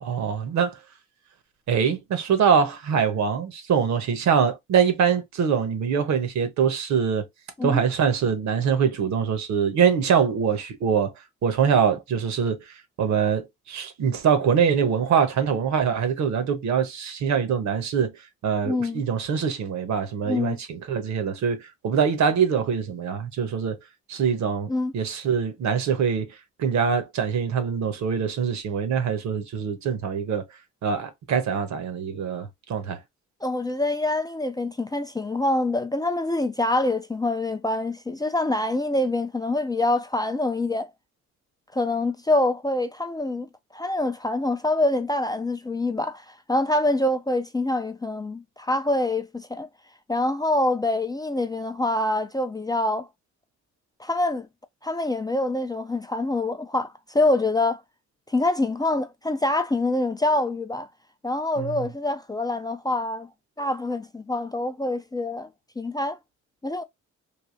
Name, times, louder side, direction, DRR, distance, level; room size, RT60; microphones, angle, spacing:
voice 1, 0.0-0.8 1.7-7.3 7.6-11.1 11.4-12.6 13.0-18.1 18.4-23.8 24.1-26.3 26.6-30.4 30.8-33.0 61.6-61.9, right 7 dB, 70° right, 1.0 m, -24 dB
voice 2, 18.6-19.0 20.3-20.6 24.7-24.9 33.4-40.9 41.7-49.7 50.1-53.1 54.0-54.5 54.8-57.8 58.3-60.9 61.2-63.3 63.6-65.5 65.8-66.2 66.6-66.8, left 2 dB, 15° left, 0.4 m, -25 dB
3.4 x 2.7 x 2.6 m
cardioid pair, 90°, 30 cm